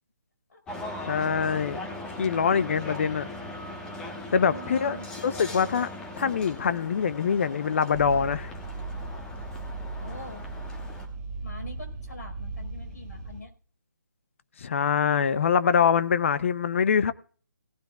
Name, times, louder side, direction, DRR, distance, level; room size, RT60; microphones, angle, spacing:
sound 1, 0.7-11.1, left 1 dB, 10° left, 1.2 m, -39 dB
voice 1, 1.1-1.8 2.2-3.3 4.3-5.0 5.2-5.9 6.2-8.5 14.6-17.1, left 6 dB, 40° left, 0.7 m, -24 dB
voice 2, 4.5-5.1 10.0-10.5 11.4-13.5, equal, 60° left, 4.7 m, -43 dB
sound 2, 7.9-13.4, right 3 dB, 25° right, 1.4 m, -37 dB
18.0 x 12.5 x 2.4 m
figure-of-eight pair, 150°, 10 cm